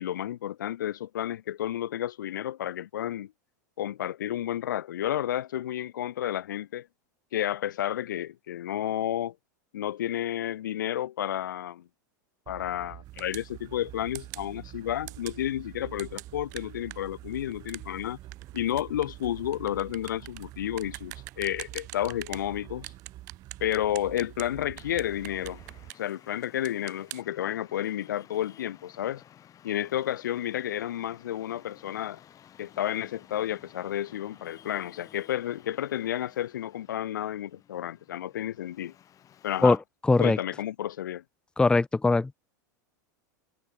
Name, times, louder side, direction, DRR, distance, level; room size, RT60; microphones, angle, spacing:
voice 1, 0.0-3.3 3.8-6.9 7.3-9.3 9.7-11.8 12.5-18.2 18.5-22.9 23.6-25.6 26.0-29.2 29.6-32.2 32.6-38.9 39.4-39.8 40.2-41.2, left 11 dB, 80° left, 2.5 m, -31 dB
sound 1, 12.5-25.9, right 15 dB, 45° right, 2.3 m, -46 dB
sound 2, 13.2-13.5 14.1-14.5 15.1-15.4 16.0-22.5 22.8-24.5 24.8-26.1 26.4-27.2, right 22 dB, 65° right, 3.0 m, -43 dB
Traffic noise roadway noise, 24.8-39.8, left 10 dB, 35° left, 5.4 m, -55 dB
voice 2, 40.0-40.4 41.6-42.3, left 3 dB, 10° left, 0.7 m, -21 dB
hypercardioid pair, 110°, 10 cm